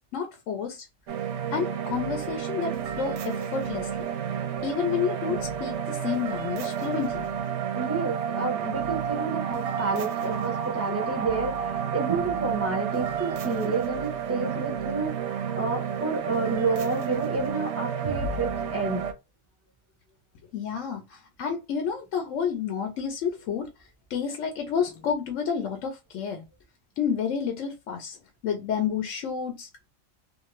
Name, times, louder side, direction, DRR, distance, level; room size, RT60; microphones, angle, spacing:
voice 1, 0.1-0.9 1.5-4.1 4.6-7.3 20.5-26.5 27.0-28.2 28.4-29.9, left 7 dB, 70° left, 0.9 m, -30 dB
sound 1, 1.1-19.1, right 8 dB, 65° right, 0.8 m, -31 dB
voice 2, 7.7-19.0, right 3 dB, 20° right, 0.5 m, -30 dB
2.6 x 2.4 x 2.9 m
omnidirectional pair, 1.4 m